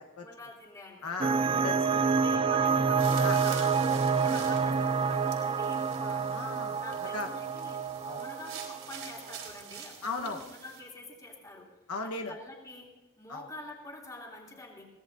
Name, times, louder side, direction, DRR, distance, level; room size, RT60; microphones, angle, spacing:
voice 1, 0.2-1.2 2.2-6.3 6.8-7.8 8.2-11.7 12.0-14.9, left 2 dB, 15° left, -2 dB, 3.0 m, -46 dB
voice 2, 1.0-2.0 3.2-3.4 6.3-6.8 7.1-7.3 8.0-8.3 10.0-10.4 11.9-12.3 13.3-13.5, left 4 dB, 90° left, 3 dB, 1.2 m, -37 dB
sound 1, 1.2-9.5, right 5 dB, 25° right, 0.4 m, -28 dB
sound 2, 3.0-10.8, right 7 dB, 70° right, 3.8 m, -46 dB
22.0 x 17.5 x 2.7 m, 1.1 s
head